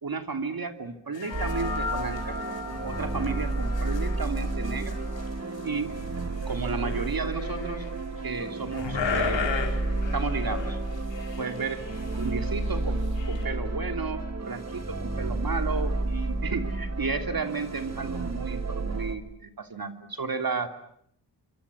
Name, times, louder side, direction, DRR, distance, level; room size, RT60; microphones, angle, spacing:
voice 1, 0.0-2.4 2.8-5.0 5.6-6.0 6.4-7.9 8.2-9.6 10.1-10.8 11.4-11.9 12.2-20.7, right 4 dB, 55° right, 7 dB, 3.0 m, -33 dB
sound 1, 1.1-13.5, left 6 dB, 80° left, 4.9 m, -37 dB
sound 2, 1.1-5.8, left 4 dB, 45° left, 7.5 m, -38 dB
sound 3, 1.3-19.2, right 2 dB, 35° right, 2.4 m, -31 dB
27.0 x 25.0 x 8.4 m, 0.69 s
cardioid pair, 75°, 44 cm